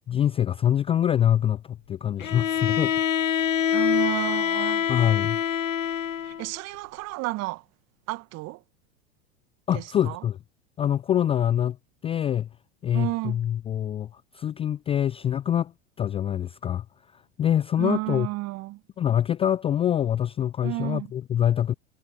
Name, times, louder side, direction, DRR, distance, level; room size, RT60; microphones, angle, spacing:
voice 1, 0.1-2.9 4.9-5.4 9.7-10.4 10.8-11.8 12.0-12.5 12.8-15.7 16.0-16.8 17.1-18.3 19.0-21.7, left 10 dB, 15° left, 0.4 m, -25 dB
Bowed string instrument, 2.2-6.5, left 9 dB, 85° left, 0.7 m, -25 dB
voice 2, 3.7-4.9 6.2-7.6 8.1-8.6 9.7-10.3 12.9-13.4 17.8-18.8 20.6-21.1, right 20 dB, 40° right, 1.6 m, -31 dB
figure-of-eight pair, 90°, 38 cm